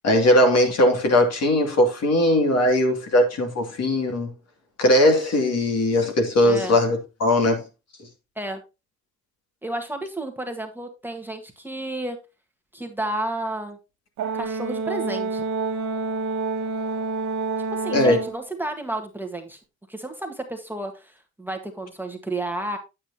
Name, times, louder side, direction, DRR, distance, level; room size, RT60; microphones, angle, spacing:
voice 1, 0.0-4.3 4.8-7.6 17.9-18.2, left 1 dB, 55° left, 2.6 m, -19 dB
voice 2, 6.4-6.8 8.3-8.6 9.6-12.2 12.7-13.8 14.3-15.4 17.7-19.6 19.9-22.8, right 1 dB, 5° right, 1.5 m, -31 dB
Brass instrument, 14.2-18.4, right 4 dB, 70° right, 1.1 m, -28 dB
8.8 x 8.5 x 2.9 m
cardioid pair, 90°, 30 cm